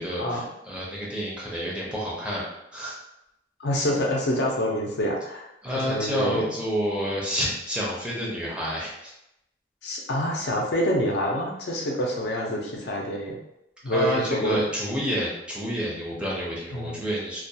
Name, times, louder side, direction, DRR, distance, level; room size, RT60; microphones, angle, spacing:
voice 1, 0.0-2.4 2.7-3.0 5.6-9.1 13.9-17.4, equal, 5° right, -6 dB, 0.5 m, -29 dB
voice 2, 3.6-5.4 5.9-6.4 9.8-13.4 13.8-14.6 16.7-17.0, equal, 65° left, -1 dB, 0.5 m, -26 dB
2.3 x 2.2 x 2.6 m, 0.84 s
head